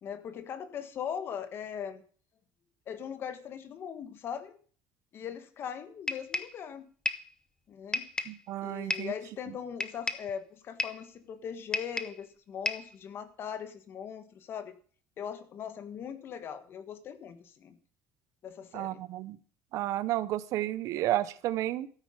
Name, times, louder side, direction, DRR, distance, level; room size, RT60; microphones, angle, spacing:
voice 1, 0.0-2.0 2.9-4.6 5.1-6.8 7.7-8.1 8.6-14.7 15.2-17.8 18.4-19.0, left 8 dB, 35° left, 12 dB, 1.5 m, -40 dB
sound 1, 6.1-6.6 7.1-7.3 7.9-8.4 8.9-9.2 9.8-10.3 10.8-11.1 11.7-12.2 12.7-12.9, left 3 dB, 10° left, 0.8 m, -33 dB
voice 2, 8.3-9.1 18.7-19.4 19.7-21.9, right 14 dB, 55° right, 16 dB, 0.8 m, -32 dB
13.0 x 9.3 x 6.5 m, 0.43 s
cardioid pair, 175°, 7 cm